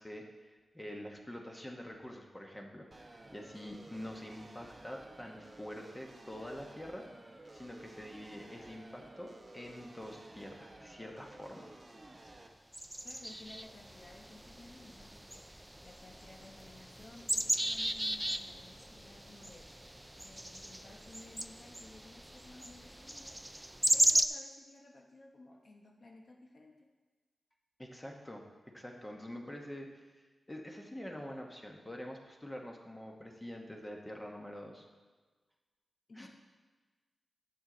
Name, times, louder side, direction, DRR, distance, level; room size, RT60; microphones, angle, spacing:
voice 1, 0.0-7.0 7.5-11.7 27.8-28.4 28.7-30.0 30.5-34.9 36.2-36.3, equal, 15° left, 1 dB, 1.1 m, -46 dB
sound 1, 2.9-12.5, right 2 dB, 30° right, 0.9 m, -54 dB
sound 2, 12.7-24.3, right 1 dB, 10° right, 0.3 m, -36 dB
voice 2, 13.0-26.9 36.1-36.3, left 2 dB, 50° left, 0 dB, 1.0 m, -56 dB
11.5 x 7.6 x 3.8 m, 1.3 s
wide cardioid pair, 130°, 0 cm